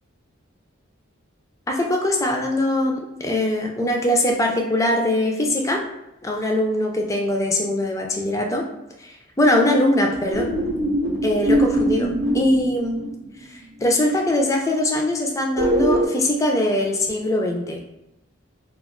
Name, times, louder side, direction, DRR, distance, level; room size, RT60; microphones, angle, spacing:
voice 1, 1.7-5.8 6.2-8.6 9.0-10.5 11.2-13.0 13.5-17.8, left 1 dB, 15° left, 1 dB, 0.3 m, -22 dB
sound 1, 10.3-13.5 15.6-16.1, right 1 dB, 60° right, 0.6 m, -22 dB
2.2 x 2.2 x 3.6 m, 0.89 s
head